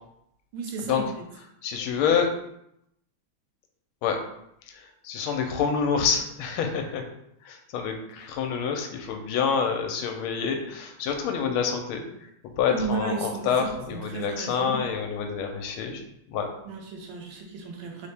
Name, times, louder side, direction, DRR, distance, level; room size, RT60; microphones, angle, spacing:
voice 1, 0.5-1.2 12.7-14.8 16.6-18.1, right 4 dB, 75° right, 2 dB, 1.4 m, -34 dB
voice 2, 1.6-2.3 4.0-4.2 4.7-7.0 7.4-12.0 12.6-16.0 16.3-16.5, left 6 dB, 80° left, 5 dB, 1.4 m, -27 dB
4.2 x 2.8 x 3.3 m, 0.77 s
omnidirectional pair, 2.3 m